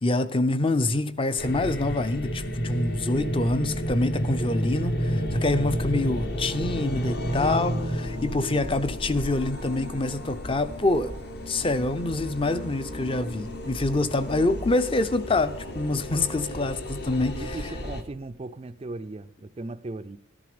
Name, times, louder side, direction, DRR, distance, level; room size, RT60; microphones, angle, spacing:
voice 1, 0.0-11.2 11.5-17.6, left 2 dB, 25° left, 0.5 m, -26 dB
sound 1, 1.4-18.0, equal, 50° left, 1.1 m, -32 dB
voice 2, 17.3-20.2, right 2 dB, 30° right, 0.4 m, -37 dB
13.0 x 11.0 x 5.1 m
head